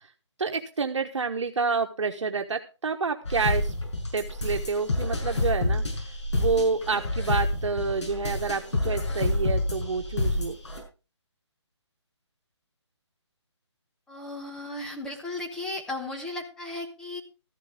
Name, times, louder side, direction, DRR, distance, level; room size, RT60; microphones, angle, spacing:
voice 1, 0.4-3.7 4.1-5.8 6.3-10.6, right 4 dB, 75° right, 4 dB, 1.2 m, -28 dB
sound 1, 3.2-10.8, left 2 dB, 70° left, 6.3 m, -28 dB
voice 2, 14.1-17.2, left 2 dB, 5° left, 1 dB, 1.1 m, -35 dB
14.0 x 11.0 x 3.6 m, 0.32 s
hypercardioid pair, 160°, 15 cm